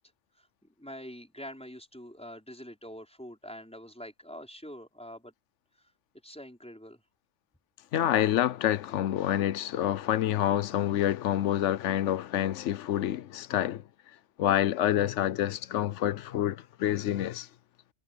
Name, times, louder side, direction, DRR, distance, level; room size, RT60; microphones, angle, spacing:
voice 1, 0.8-5.3 6.2-7.0, equal, 5° left, 5.5 m, -45 dB
voice 2, 7.9-13.8 14.4-17.5, left 11 dB, 75° left, 0.9 m, -27 dB
omnidirectional pair, 1.3 m